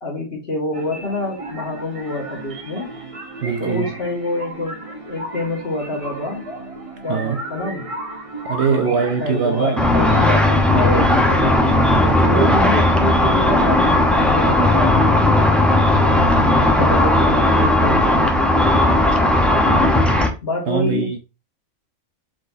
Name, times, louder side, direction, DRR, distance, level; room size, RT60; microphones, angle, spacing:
voice 1, 0.0-2.9 3.6-6.5 7.0-7.9 8.6-11.8 12.2-16.3 16.8-19.9 20.4-21.1, left 2 dB, 45° left, 1.9 m, -27 dB
sound 1, 0.7-11.3, right 2 dB, 30° right, 0.9 m, -34 dB
voice 2, 3.4-3.9 7.1-7.4 8.4-9.9 11.9-12.6 20.7-21.2, right 6 dB, 60° right, 0.8 m, -22 dB
Car / Traffic noise roadway noise / Engine, 9.8-20.3, left 1 dB, ahead, 0.4 m, -16 dB
4.6 x 4.3 x 2.6 m
omnidirectional pair, 1.4 m